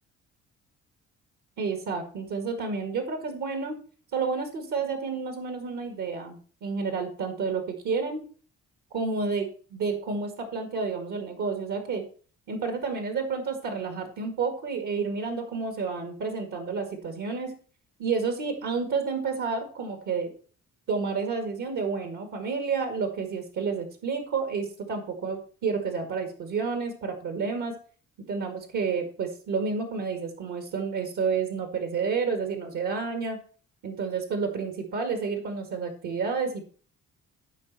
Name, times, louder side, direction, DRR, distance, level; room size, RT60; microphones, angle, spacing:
voice 1, 1.6-3.7 4.1-8.2 8.9-12.0 12.5-17.5 18.0-20.3 20.9-27.8 28.3-33.4 33.8-36.6, right 5 dB, 80° right, 5 dB, 2.0 m, -30 dB
13.5 x 5.3 x 4.1 m, 0.40 s
cardioid pair, 90°, 30 cm